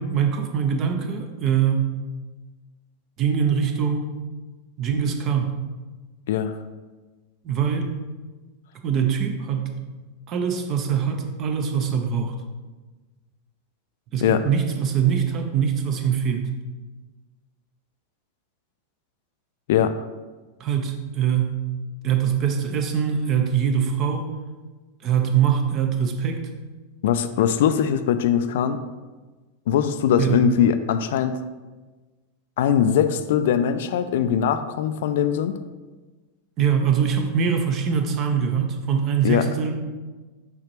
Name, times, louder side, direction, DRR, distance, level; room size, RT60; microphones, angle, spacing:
voice 1, 0.0-1.9 3.2-4.1 4.8-5.5 7.4-7.9 8.8-9.7 10.3-12.3 14.1-16.4 20.6-21.5 22.0-24.3 25.0-26.4 30.2-30.4 36.6-39.7, right 7 dB, 35° right, 4 dB, 0.8 m, -23 dB
voice 2, 27.0-28.8 29.7-31.4 32.6-35.5 39.2-39.5, left 9 dB, 55° left, 11 dB, 0.3 m, -21 dB
7.1 x 4.9 x 3.0 m, 1.3 s
figure-of-eight pair, 90°, 0 cm